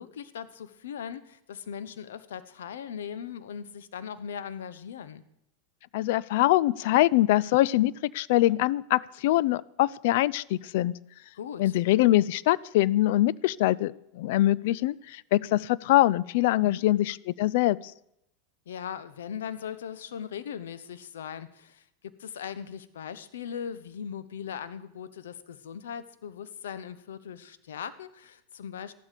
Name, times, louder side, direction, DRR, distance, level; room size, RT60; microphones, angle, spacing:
voice 1, 0.0-5.2 11.3-11.8 16.5-16.8 18.7-28.9, left 8 dB, 85° left, 14 dB, 0.9 m, -39 dB
voice 2, 5.9-10.9 11.6-17.8, left 16 dB, 65° left, 22 dB, 0.4 m, -23 dB
14.0 x 12.0 x 5.1 m, 0.80 s
hypercardioid pair, 105°, 0 cm